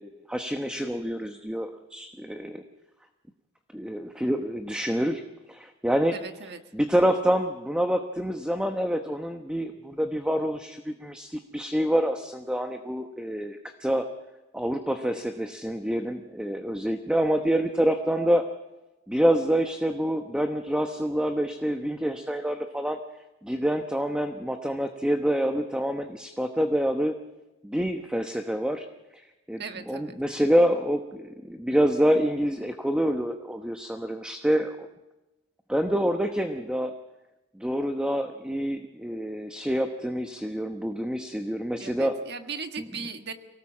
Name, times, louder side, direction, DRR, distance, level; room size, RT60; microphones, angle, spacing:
voice 1, 0.0-2.6 3.7-5.2 5.5-6.2 6.7-14.1 14.5-18.4 19.1-23.0 23.4-27.2 27.6-28.9 29.5-34.9 35.7-36.9 37.5-42.1, equal, 5° right, 5 dB, 1.0 m, -27 dB
voice 2, 6.1-6.6 29.6-30.1 41.8-43.3, right 5 dB, 55° right, 6 dB, 1.6 m, -37 dB
24.5 x 18.0 x 7.4 m, 1.0 s
head